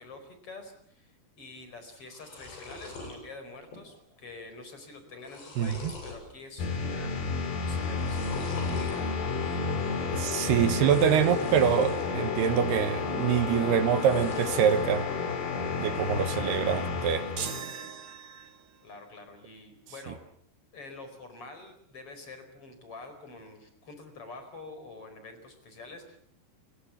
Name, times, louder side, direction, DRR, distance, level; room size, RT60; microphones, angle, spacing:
voice 1, 0.0-7.1 7.6-9.3 18.8-20.2 20.7-26.2, left 3 dB, 35° left, 8 dB, 5.3 m, -46 dB
sound 1, 2.0-3.2 3.6-4.0 4.3-4.4 5.0-6.2 6.7-7.2 7.9-9.0 10.7-12.1 12.5-13.1 13.8-14.9, left 3 dB, 80° left, 9.9 m, -45 dB
voice 2, 5.6-5.9 10.1-15.1 15.8-17.3 20.1-20.2, right 8 dB, 75° right, 11 dB, 3.2 m, -25 dB
sound 2, 6.6-17.6, left 4 dB, 60° left, 4.5 m, -31 dB
sound 3, 17.4-18.8, right 7 dB, 55° right, 1.5 m, -39 dB
29.5 x 22.5 x 7.3 m, 0.65 s
omnidirectional pair, 4.8 m